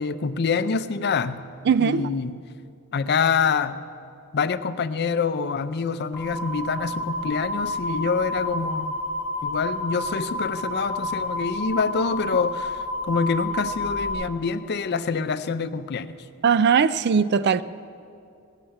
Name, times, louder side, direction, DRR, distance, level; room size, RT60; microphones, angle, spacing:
voice 1, 0.0-1.4 1.8-2.4 2.9-3.8 4.3-9.0 9.4-16.1, left 5 dB, 50° left, 0.5 m, -26 dB
voice 2, 1.7-2.0 16.4-17.6, right 6 dB, 50° right, 0.4 m, -19 dB
sound 1, 6.1-14.1, left 1 dB, 10° right, 4.2 m, -30 dB
17.5 x 7.2 x 8.8 m
head